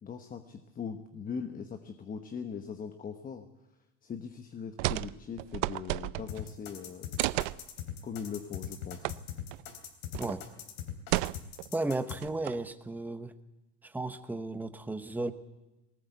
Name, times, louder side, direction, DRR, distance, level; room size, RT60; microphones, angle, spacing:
voice 1, 0.0-3.5 4.0-7.2 8.0-9.1, left 6 dB, 20° left, 7 dB, 1.1 m, -40 dB
sound 1, 4.8-5.1 5.4-6.5 7.2-7.6 9.0-9.2 9.5-9.6 10.1-10.4 11.1-11.7 12.2-12.7, right 20 dB, 80° right, 0.6 m, -32 dB
sound 2, 6.3-12.2, left 10 dB, 70° left, 3.6 m, -40 dB
voice 2, 11.7-13.3 13.8-15.3, right 2 dB, 5° right, 10 dB, 0.9 m, -34 dB
19.0 x 18.5 x 8.2 m, 1.0 s
cardioid pair, 145°, 37 cm